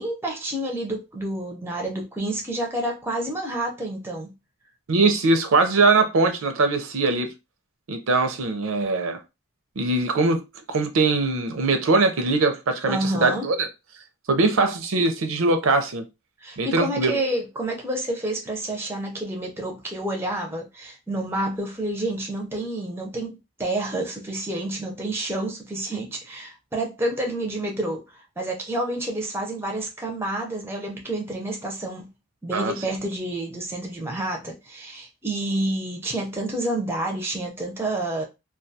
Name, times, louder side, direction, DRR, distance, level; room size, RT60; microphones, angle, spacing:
voice 1, 0.0-4.3 12.9-13.5 16.4-32.1 32.4-38.2, right 1 dB, 10° right, 0.4 m, -29 dB
voice 2, 4.9-7.3 7.9-9.2 9.8-10.4 10.7-13.7 14.3-16.0 16.6-17.2 32.5-32.7, right 3 dB, 70° right, 0.5 m, -21 dB
2.2 x 2.2 x 2.6 m
head